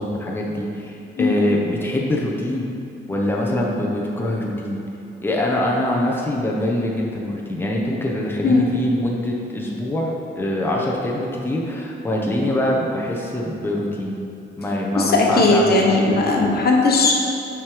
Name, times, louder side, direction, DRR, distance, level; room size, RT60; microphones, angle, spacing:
voice 1, 0.0-2.7 3.1-4.8 5.2-14.1 14.6-16.6, left 1 dB, 10° left, -3 dB, 1.0 m, -24 dB
voice 2, 15.0-17.1, left 3 dB, 50° left, -1 dB, 1.2 m, -17 dB
7.2 x 5.0 x 4.6 m, 2.7 s
cardioid pair, 90°, 20 cm